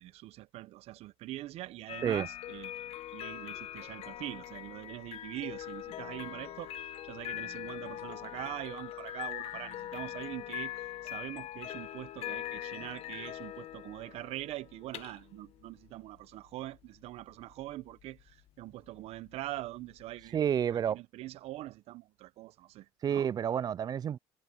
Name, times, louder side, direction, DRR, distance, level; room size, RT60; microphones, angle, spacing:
voice 1, 0.0-10.7 11.0-20.4 20.7-23.3, right 16 dB, 65° right, 0.9 m, -43 dB
sound 1, 1.9-20.9, left 13 dB, 60° left, 1.3 m, -42 dB
voice 2, 20.3-21.0 23.0-24.2, right 9 dB, 35° right, 0.4 m, -29 dB
supercardioid pair, 90°, 11 cm